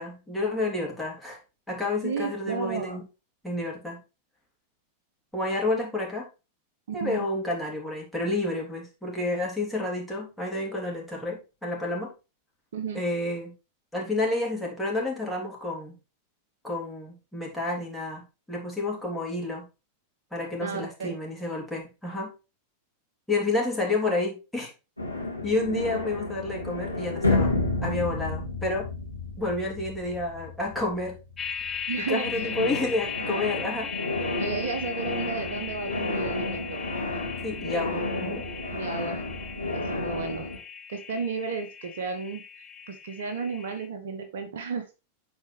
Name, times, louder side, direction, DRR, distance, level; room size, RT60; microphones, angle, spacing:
voice 1, 0.0-1.4 1.7-3.0 3.4-4.0 5.3-6.3 6.9-12.1 12.9-13.5 13.9-16.0 16.6-19.6 20.3-22.3 23.3-24.7 25.4-27.5 27.8-28.9 29.4-31.1 32.0-33.9 37.4-38.5, left 2 dB, 5° left, -3 dB, 3.4 m, -30 dB
voice 2, 2.0-3.0 6.9-7.3 12.7-13.0 20.6-21.2 31.9-32.5 34.4-36.8 38.7-39.2 39.7-40.5 40.9-44.8, right 5 dB, 60° right, 7 dB, 1.1 m, -33 dB
sound 1, 25.0-31.9 32.2-40.6, left 2 dB, 90° left, 1.8 m, -31 dB
sound 2, 31.4-43.9, left 7 dB, 20° left, 1.0 m, -38 dB
11.0 x 4.5 x 3.3 m, 0.30 s
figure-of-eight pair, 90°, 0 cm